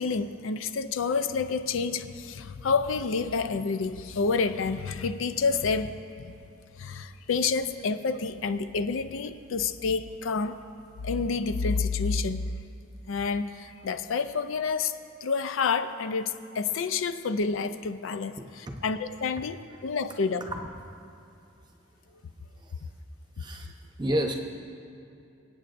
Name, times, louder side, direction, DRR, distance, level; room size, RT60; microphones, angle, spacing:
voice 1, 0.0-6.3 6.8-10.6 11.0-12.4 13.1-14.9 15.2-18.3 18.8-20.5, left 4 dB, 85° left, 11 dB, 0.5 m, -28 dB
voice 2, 23.4-23.7 24.0-24.3, equal, 20° right, 3 dB, 0.8 m, -29 dB
26.0 x 8.6 x 2.6 m, 2.6 s
head